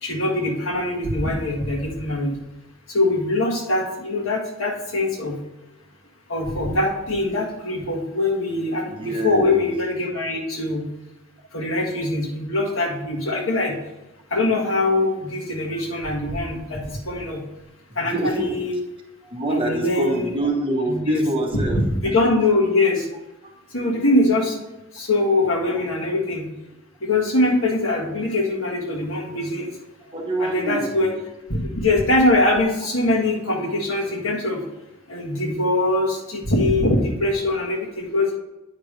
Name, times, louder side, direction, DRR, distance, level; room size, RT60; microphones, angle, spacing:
voice 1, 0.0-2.3 2.9-5.4 6.3-10.8 11.5-13.7 14.3-17.4 18.0-18.8 19.5-20.3 20.9-21.2 21.7-21.8 22.1-23.0 23.7-24.6 24.9-26.5 27.0-29.7 30.4-31.1 31.5-34.6 35.1-38.3, left 2 dB, 75° left, -1 dB, 1.6 m, -22 dB
voice 2, 8.9-9.7 15.7-15.8 18.0-18.6 19.2-22.3 23.8-24.1 30.1-31.2, right 1 dB, 25° right, 1 dB, 1.1 m, -26 dB
9.2 x 5.1 x 3.3 m, 0.99 s
head